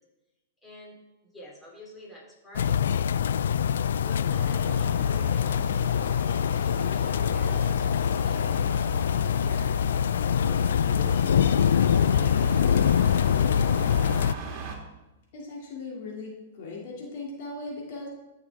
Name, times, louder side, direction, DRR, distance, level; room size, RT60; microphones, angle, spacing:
voice 1, 0.6-1.0 1.3-3.1 4.0-6.2 6.6-9.7, left 1 dB, 10° left, -4 dB, 3.2 m, -48 dB
sound 1, 2.5-14.3, left 8 dB, 80° left, 0.3 m, -24 dB
sound 2, 4.3-14.8, right 4 dB, 40° right, 2.0 m, -40 dB
voice 2, 15.3-18.1, left 3 dB, 60° left, -2 dB, 2.7 m, -38 dB
14.0 x 6.5 x 3.6 m, 1.0 s
hypercardioid pair, 130°, 0 cm